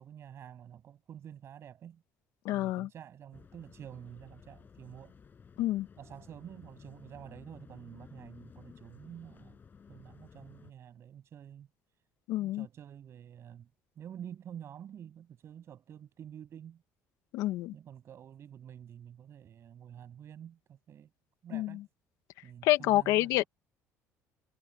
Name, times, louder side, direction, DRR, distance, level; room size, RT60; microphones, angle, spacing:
voice 1, 0.0-2.0 2.5-5.1 6.0-9.6 9.9-11.7 12.4-13.7 14.0-16.8 17.7-21.1 21.4-21.8 22.4-23.5, right 9 dB, 50° right, 7.7 m, -49 dB
voice 2, 2.4-2.9 5.6-5.9 12.3-12.6 17.3-17.7 21.5-21.8 22.6-23.4, left 16 dB, 80° left, 1.6 m, -28 dB
sound 1, 3.3-10.7, left 6 dB, 35° left, 8.0 m, -55 dB
cardioid pair, 110°, 6 cm